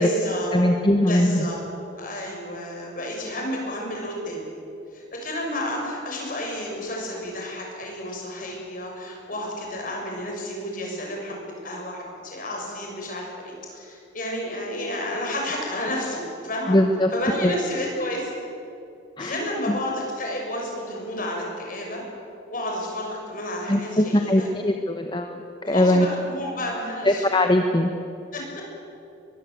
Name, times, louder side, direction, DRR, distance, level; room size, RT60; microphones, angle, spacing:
voice 1, 0.0-0.6 1.1-1.6 2.0-4.5 4.9-16.8 17.1-18.3 19.2-22.0 22.5-24.5 25.6-27.2 28.3-28.6, left 1 dB, 45° left, 0 dB, 6.6 m, -31 dB
voice 2, 0.5-1.5 16.7-17.1 17.4-17.5 19.2-19.4 19.7-19.8 23.7-26.1 27.0-27.9, left 1 dB, 25° left, 5 dB, 1.1 m, -21 dB
23.0 x 22.0 x 8.0 m, 2.8 s
head